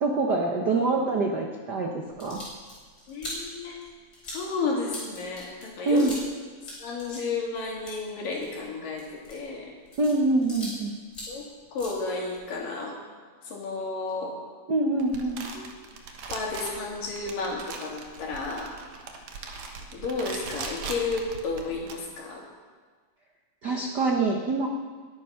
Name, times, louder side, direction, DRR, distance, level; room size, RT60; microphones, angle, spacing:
voice 1, 0.0-2.4 5.8-6.1 10.0-10.9 14.7-15.4 23.6-24.7, right 3 dB, 75° right, 1 dB, 0.9 m, -25 dB
sound 1, 2.1-6.3 6.6-10.8 11.1-12.5, equal, 30° left, 6.2 m, -42 dB
voice 2, 3.1-3.8 4.2-6.1 6.8-9.7 11.3-11.5 11.7-13.0 13.4-14.3 15.5-15.6 16.3-18.7 19.9-22.4 23.7-23.8, left 3 dB, 75° left, -1 dB, 4.5 m, -32 dB
sound 2, 15.0-21.9, right 4 dB, 60° right, 2.3 m, -40 dB
21.5 x 10.0 x 5.8 m, 1.5 s
omnidirectional pair, 3.9 m